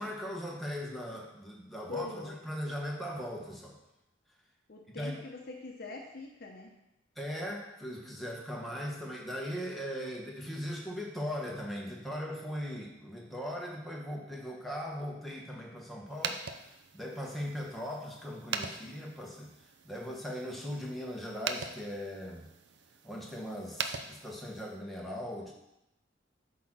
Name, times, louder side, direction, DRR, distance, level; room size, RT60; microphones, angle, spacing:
voice 1, 0.0-3.8 5.0-5.2 7.2-19.5 19.8-22.5 23.0-25.5, equal, ahead, -3 dB, 1.1 m, -39 dB
voice 2, 1.9-2.4 4.7-6.7, left 3 dB, 50° left, 1 dB, 0.8 m, -42 dB
sound 1, 16.1-24.8, right 6 dB, 60° right, 0.5 m, -42 dB
8.3 x 3.8 x 6.1 m, 0.87 s
head